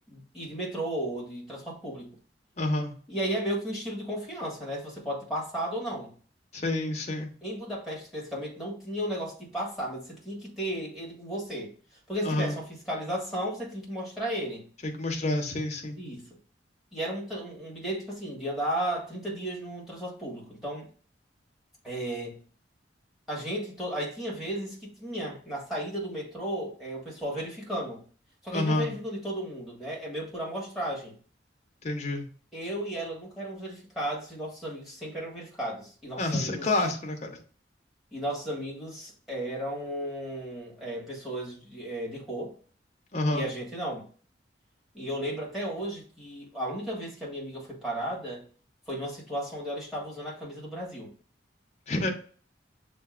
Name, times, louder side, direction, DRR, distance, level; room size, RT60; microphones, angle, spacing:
voice 1, 0.0-2.1 3.1-6.1 7.4-11.7 12.1-14.6 16.0-16.3 16.9-20.9 21.8-22.4 23.3-28.0 28.4-31.1 32.5-36.7 38.1-42.5 43.3-44.0 44.9-48.4 48.9-51.1, right 1 dB, ahead, -4 dB, 1.6 m, -34 dB
voice 2, 2.6-2.9 6.5-7.3 12.2-12.5 14.8-16.0 28.5-28.9 31.8-32.2 36.2-37.3 43.1-43.5 51.9-52.1, left 2 dB, 35° left, 2 dB, 0.8 m, -28 dB
6.7 x 2.6 x 2.5 m, 0.42 s
head